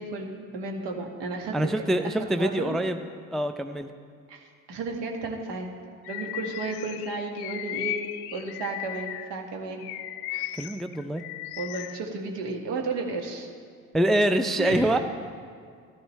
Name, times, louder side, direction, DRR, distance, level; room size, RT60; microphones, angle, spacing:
voice 1, 0.0-2.1 2.4-2.8 4.3-5.7 6.1-8.0 8.3-9.9 10.3-10.6 11.6-13.5 14.6-15.0, right 3 dB, 70° right, 2 dB, 1.7 m, -33 dB
voice 2, 1.5-3.0 3.3-3.9 10.5-11.2 13.9-15.0, right 1 dB, ahead, 8 dB, 0.4 m, -25 dB
Bird vocalization bird call bird song, 6.0-9.4 9.8-12.0, left 14 dB, 65° left, 0.6 m, -36 dB
13.5 x 12.0 x 3.2 m, 2.1 s
hypercardioid pair, 55°, 42 cm